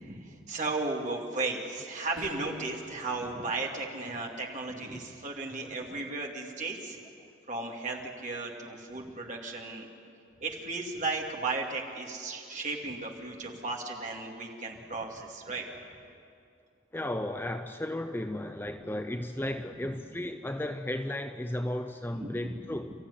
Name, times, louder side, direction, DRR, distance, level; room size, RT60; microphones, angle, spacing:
voice 1, 0.0-7.0 7.5-9.9 10.4-15.6 22.1-22.7, right 3 dB, 35° right, 0 dB, 2.8 m, -35 dB
sound 1, 2.2-2.7, right 1 dB, 85° right, 3.8 m, -42 dB
voice 2, 16.9-22.9, left 1 dB, 10° left, 7 dB, 0.6 m, -34 dB
29.5 x 14.5 x 9.9 m, 2.5 s
head